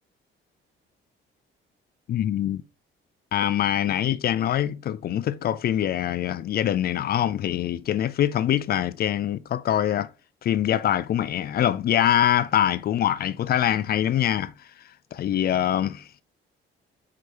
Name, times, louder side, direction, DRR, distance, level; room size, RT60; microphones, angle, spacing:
voice 1, 2.1-2.6 3.3-10.1 10.4-14.5 15.1-16.2, left 11 dB, 45° left, 0.5 m, -24 dB
4.9 x 4.8 x 4.3 m
cardioid pair, 155°, 21 cm